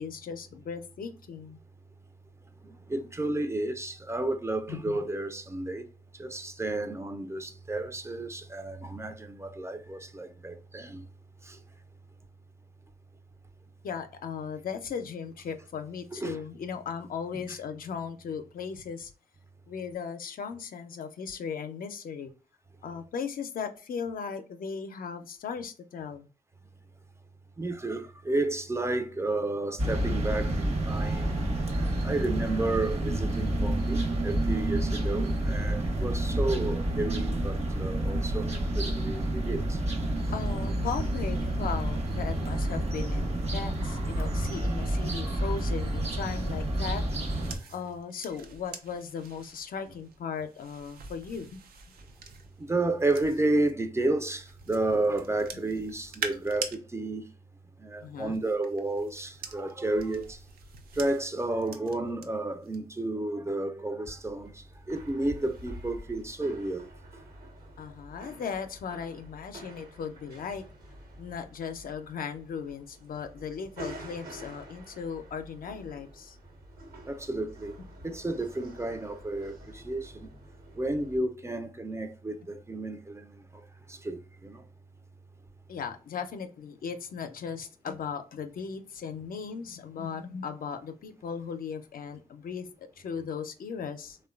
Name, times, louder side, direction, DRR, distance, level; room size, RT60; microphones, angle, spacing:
voice 1, 0.0-1.6 4.7-5.0 13.8-19.1 19.7-22.3 22.8-26.3 31.8-32.2 40.3-47.0 47.7-51.6 58.0-58.4 67.8-70.6 71.2-76.4 85.7-94.2, left 6 dB, 70° left, 0.4 m, -37 dB
voice 2, 2.6-5.9 6.1-11.1 11.4-11.6 16.1-16.4 27.6-31.4 32.0-39.8 40.2-40.3 47.5-47.7 52.6-57.3 57.8-60.4 60.9-66.9 77.0-77.8 78.0-80.3 80.7-84.7, right 2 dB, 20° right, 0.4 m, -32 dB
sound 1, 29.8-47.6, right 1 dB, 45° right, 0.8 m, -29 dB
sound 2, 46.2-53.7 54.3-56.8 58.0-62.3 62.6-63.0, right 5 dB, 90° right, 0.4 m, -44 dB
sound 3, 64.1-81.2, right 1 dB, 75° right, 1.1 m, -48 dB
3.0 x 2.1 x 2.3 m
cardioid pair, 55°, 15 cm